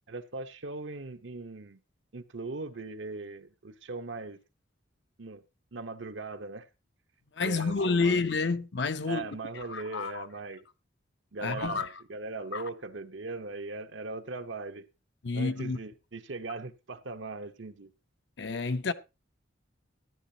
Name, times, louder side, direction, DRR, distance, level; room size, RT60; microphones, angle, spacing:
voice 1, 0.1-1.8 2.1-4.4 5.2-5.4 5.7-6.7 7.4-8.2 9.0-10.6 11.3-14.9 15.3-17.9, right 3 dB, 75° right, 1.0 m, -39 dB
voice 2, 7.4-9.3 9.7-10.3 11.4-11.9 12.5-12.6 15.2-15.8 18.4-18.9, left 4 dB, 65° left, 0.7 m, -29 dB
13.5 x 11.0 x 2.8 m
head